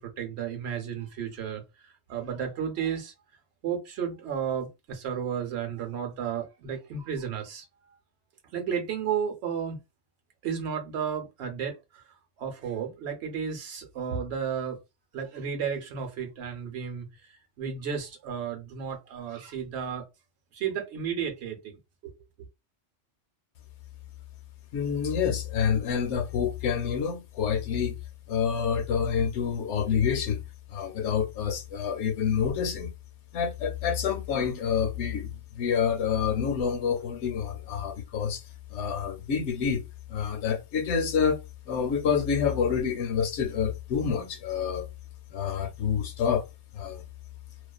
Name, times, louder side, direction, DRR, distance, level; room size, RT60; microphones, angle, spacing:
voice 1, 0.0-3.1 3.6-7.6 8.5-9.8 10.4-12.0 12.4-14.8 15.1-20.1 20.5-22.1, right 7 dB, 65° right, 0.9 m, -33 dB
voice 2, 24.7-28.0 28.3-30.4 30.7-32.9 33.3-35.3 35.6-38.4 38.7-39.8 40.1-44.9 45.3-46.4 46.7-47.0, left 7 dB, 75° left, 0.9 m, -27 dB
2.4 x 2.3 x 2.2 m
omnidirectional pair, 1.3 m